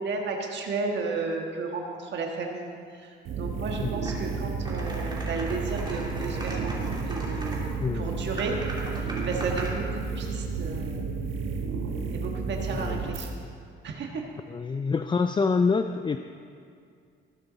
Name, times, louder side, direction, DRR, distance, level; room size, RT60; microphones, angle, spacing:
voice 1, 0.0-3.1 3.4-6.7 7.1-8.6 8.9-11.0 12.1-13.3 13.8-14.2, right 4 dB, 65° right, 1 dB, 1.5 m, -33 dB
sound 1, 3.2-13.3, right 4 dB, 80° right, 1.3 m, -32 dB
sound 2, 4.1-4.2 4.6-7.6 8.4-9.8, right 1 dB, 20° right, 3.1 m, -39 dB
voice 2, 7.8-8.3 12.7-13.1 14.5-16.2, left 4 dB, 25° left, 8 dB, 0.4 m, -26 dB
19.5 x 9.3 x 4.0 m, 2.3 s
cardioid pair, 90°, 20 cm